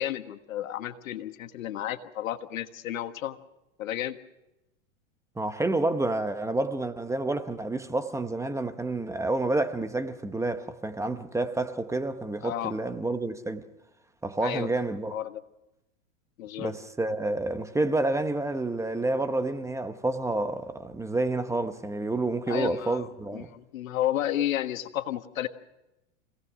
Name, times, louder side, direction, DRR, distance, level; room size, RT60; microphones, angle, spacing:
voice 1, 0.0-3.4 3.8-4.2 12.4-12.7 14.4-14.7 15.1-15.4 16.4-16.7 22.5-23.1 23.3-25.5, left 12 dB, 80° left, 1.6 m, -32 dB
voice 2, 5.4-13.7 14.2-15.1 16.6-23.5, right 2 dB, 5° right, 0.9 m, -29 dB
26.0 x 18.0 x 6.2 m
hypercardioid pair, 125°, 40 cm